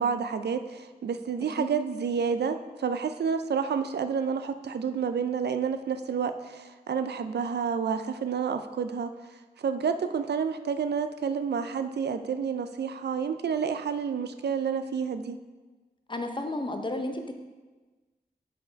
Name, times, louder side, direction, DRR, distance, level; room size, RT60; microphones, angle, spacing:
voice 1, 0.0-9.1 9.6-15.4, right 6 dB, 75° right, 9 dB, 0.4 m, -29 dB
voice 2, 16.1-17.4, left 1 dB, 30° left, 5 dB, 0.7 m, -32 dB
6.6 x 4.3 x 4.5 m, 1.3 s
wide cardioid pair, 65°, 17 cm